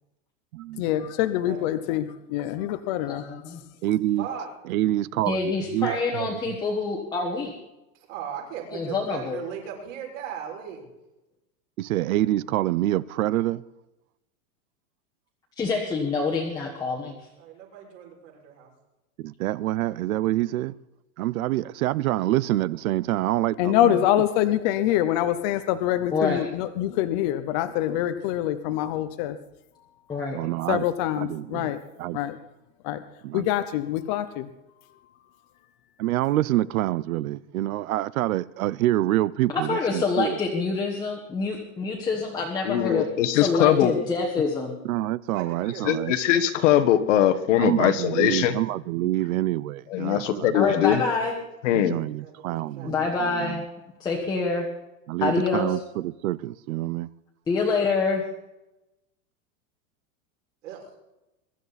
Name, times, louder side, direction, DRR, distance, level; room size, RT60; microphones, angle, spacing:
voice 1, 0.8-3.3 23.6-29.4 30.7-31.8 32.1-32.4 32.8-33.0 33.3-34.5, left 12 dB, 35° left, 11 dB, 0.7 m, -25 dB
voice 2, 1.4-1.8 4.2-4.5 5.8-6.0 8.1-10.9 17.4-18.7 45.3-46.0 52.2-53.2 60.6-60.9, right 8 dB, 65° right, -1 dB, 6.3 m, -37 dB
voice 3, 3.1-3.6 5.3-7.5 8.7-9.4 15.6-17.1 26.1-26.4 30.1-30.4 39.5-43.0 43.3-44.7 50.5-51.3 52.8-53.6 54.0-54.7 55.2-55.8 57.5-58.2, left 4 dB, 10° left, -2 dB, 1.3 m, -26 dB
voice 4, 3.8-4.3 4.7-6.5 11.8-13.6 19.2-20.7 21.2-24.0 30.3-30.8 31.2-31.7 32.0-32.2 33.2-33.5 36.0-40.4 44.8-46.1 47.6-50.5 50.9-51.0 51.7-52.9 53.2-53.6 55.1-57.1, right 15 dB, 85° right, 20 dB, 0.8 m, -26 dB
voice 5, 42.6-43.9 45.8-48.6 49.9-51.0 51.6-52.0, left 11 dB, 60° left, 11 dB, 1.4 m, -21 dB
22.5 x 12.5 x 4.1 m, 0.96 s
supercardioid pair, 175°, 41 cm